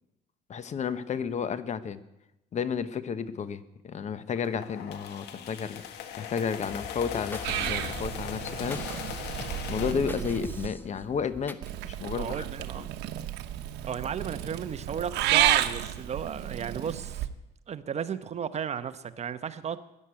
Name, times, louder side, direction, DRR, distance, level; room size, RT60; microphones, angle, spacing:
voice 1, 0.5-2.0 2.5-5.8 6.2-8.8 9.7-11.6 11.8-12.4, left 7 dB, 45° left, 13 dB, 1.0 m, -32 dB
sound 1, 4.3-9.9, left 9 dB, 85° left, 1.7 m, -39 dB
sound 2, 6.6-11.7, left 2 dB, 10° left, 1.0 m, -43 dB
Purr / Meow, 7.4-10.7 11.6-17.3, right 13 dB, 85° right, 1.0 m, -31 dB
voice 2, 12.2-12.9 13.8-17.3 17.7-19.8, right 7 dB, 40° right, 11 dB, 0.9 m, -34 dB
14.0 x 10.0 x 9.7 m, 0.93 s
cardioid pair, 110°, 17 cm